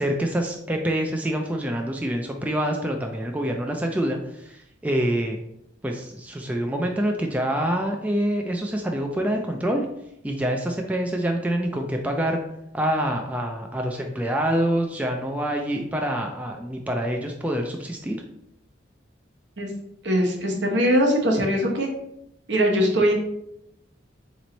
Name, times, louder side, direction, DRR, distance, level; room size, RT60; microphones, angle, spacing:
voice 1, 0.0-5.4 5.8-9.9 10.2-12.4 12.7-18.2, right 1 dB, 10° right, 2 dB, 0.3 m, -26 dB
voice 2, 20.0-21.9 22.5-23.1, equal, 65° right, 1 dB, 1.0 m, -21 dB
4.2 x 3.1 x 3.9 m, 0.80 s
head